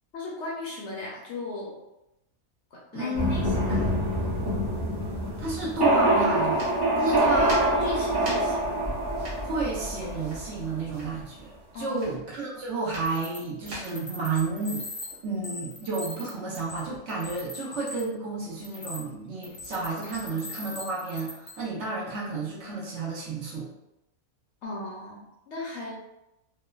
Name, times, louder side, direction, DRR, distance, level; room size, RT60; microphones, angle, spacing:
voice 1, 0.1-1.8 2.7-3.9 7.1-8.6 11.7-12.2 24.6-26.0, left 2 dB, 65° left, -4 dB, 0.8 m, -37 dB
voice 2, 2.9-3.5 5.4-6.6 7.0-7.7 9.4-14.8 15.2-23.7, right 3 dB, 60° right, -5 dB, 0.9 m, -31 dB
sound 1, 3.1-10.8, right 1 dB, 30° right, 0.4 m, -25 dB
sound 2, 6.5-15.7, right 1 dB, 80° right, 1.6 m, -42 dB
sound 3, 12.9-13.4 13.7-18.1 18.6-19.0 19.4-21.6, left 2 dB, 35° left, 0.4 m, -40 dB
3.1 x 2.1 x 2.3 m, 0.89 s
omnidirectional pair, 1.5 m